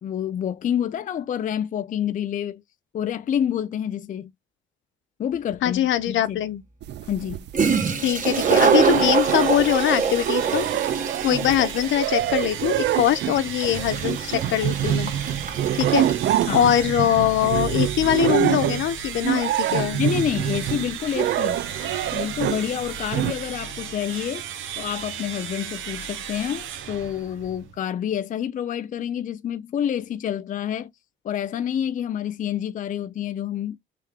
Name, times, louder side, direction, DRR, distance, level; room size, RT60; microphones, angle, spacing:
voice 1, 0.0-2.6 2.9-4.3 5.2-5.8 6.1-6.4 7.1-7.4 16.5-16.7 20.0-21.6 22.1-24.4 24.8-30.9 31.2-33.8, left 9 dB, 40° left, 0.4 m, -28 dB
Toilet flush, 5.5-5.6 7.3-7.4 7.5-16.9, right 5 dB, 40° right, 1.4 m, -26 dB
voice 2, 5.6-6.6 8.0-10.7 11.2-15.1 15.7-16.1 16.5-20.0, left 11 dB, 75° left, 0.7 m, -22 dB
sound 1, 6.8-7.9 8.3-9.8 10.0-22.7 23.1-23.3, right 12 dB, 60° right, 0.4 m, -25 dB
sound 2, 8.3-27.8, right 8 dB, 80° right, 0.9 m, -35 dB
3.3 x 3.1 x 3.6 m
cardioid pair, 90°, 20 cm